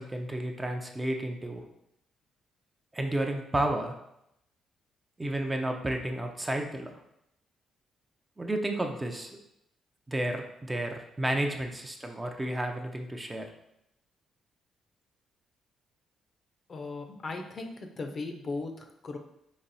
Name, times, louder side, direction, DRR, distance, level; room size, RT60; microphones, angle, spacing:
voice 1, 0.0-1.6 2.9-4.0 5.2-6.9 8.4-9.4 10.1-13.5, right 1 dB, 15° right, 3 dB, 0.6 m, -31 dB
voice 2, 16.7-19.2, left 3 dB, 40° left, 5 dB, 0.6 m, -37 dB
4.2 x 3.0 x 4.1 m, 0.80 s
cardioid pair, 90°, 0 cm